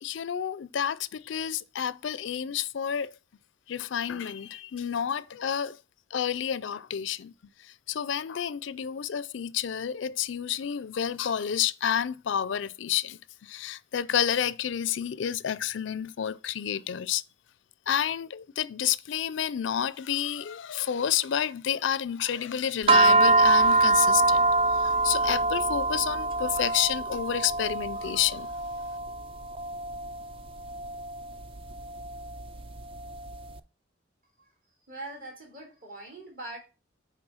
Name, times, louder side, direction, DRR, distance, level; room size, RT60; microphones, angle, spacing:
voice 1, 0.0-3.1 3.7-5.8 6.1-7.3 7.6-17.2 17.9-24.4 24.7-28.5, left 9 dB, 70° left, 0.4 m, -30 dB
sound 1, 22.9-33.4, right 3 dB, 30° right, 0.4 m, -25 dB
voice 2, 34.9-36.6, right 2 dB, 45° right, 3.1 m, -42 dB
6.0 x 4.6 x 6.4 m
head